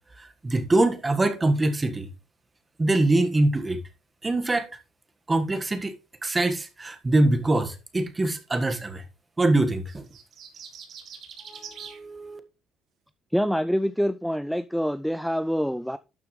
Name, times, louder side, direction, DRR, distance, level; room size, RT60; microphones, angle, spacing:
voice 1, 0.2-2.1 2.8-3.8 4.2-4.7 5.3-5.9 6.2-9.0 9.4-10.0 11.5-12.4, right 2 dB, 15° right, 1.6 m, -24 dB
sound 1, 9.9-12.0, right 7 dB, 55° right, 2.6 m, -43 dB
voice 2, 13.3-16.0, equal, ahead, 0.4 m, -26 dB
12.0 x 6.8 x 3.2 m
cardioid pair, 120°, 0 cm